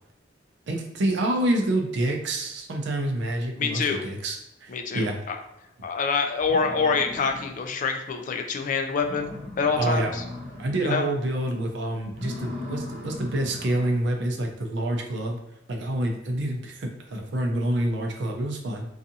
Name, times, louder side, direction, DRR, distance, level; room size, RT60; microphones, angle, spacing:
voice 1, 0.7-5.1 9.8-10.1 10.6-15.4 15.7-18.9, right 1 dB, 70° right, 2 dB, 0.5 m, -27 dB
voice 2, 3.6-4.0 4.7-5.4 5.8-9.3 9.6-10.2 10.8-11.1, left 5 dB, 45° left, 5 dB, 0.3 m, -26 dB
sound 1, 5.9-6.0 6.4-7.8 8.2-8.3 8.7-8.8 9.0-10.9 11.2-11.6 12.1-14.1, left 2 dB, 45° right, 0.9 m, -39 dB
2.6 x 2.4 x 2.6 m, 0.86 s
head